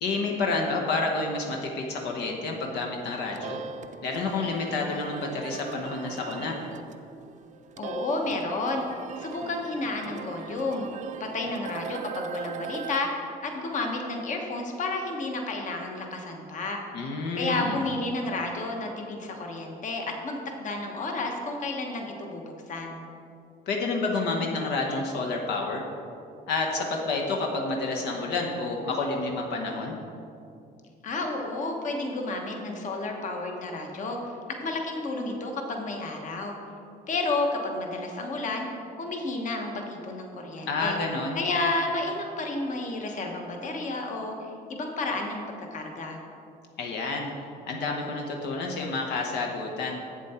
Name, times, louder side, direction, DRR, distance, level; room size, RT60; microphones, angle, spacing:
voice 1, 0.0-3.6 4.0-6.6 16.9-17.8 23.7-25.9 26.5-29.9 40.7-41.4 46.8-47.3 47.7-50.0, left 3 dB, 80° left, 0 dB, 1.0 m, -29 dB
sound 1, 3.0-13.0, right 6 dB, 45° right, 0.4 m, -40 dB
voice 2, 7.8-10.9 11.3-16.8 17.4-23.0 31.0-34.3 34.6-36.5 37.1-38.7 39.0-41.0 41.3-44.3 44.7-46.2, left 2 dB, 50° left, 2 dB, 1.2 m, -31 dB
7.9 x 7.3 x 4.3 m, 2.6 s
cardioid pair, 110°, 17 cm